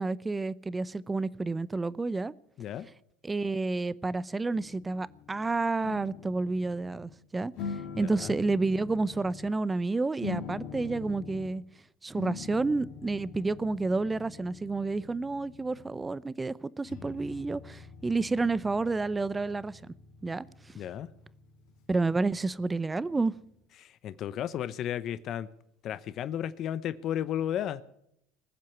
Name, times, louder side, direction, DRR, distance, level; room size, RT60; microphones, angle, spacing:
voice 1, 0.0-2.3 3.2-11.6 12.0-19.8 20.2-20.8 21.9-23.4, right 3 dB, 15° right, 0.7 m, -30 dB
sound 1, 4.5-5.4 5.8-7.2 7.5-9.6 10.2-11.6 12.1-16.1 16.8-23.3, left 6 dB, 70° left, 2.7 m, -44 dB
voice 2, 7.9-8.3 20.8-21.1 23.8-25.5 25.8-27.8, left 10 dB, 50° left, 0.8 m, -33 dB
20.0 x 7.6 x 9.5 m
supercardioid pair, 90°, 0 cm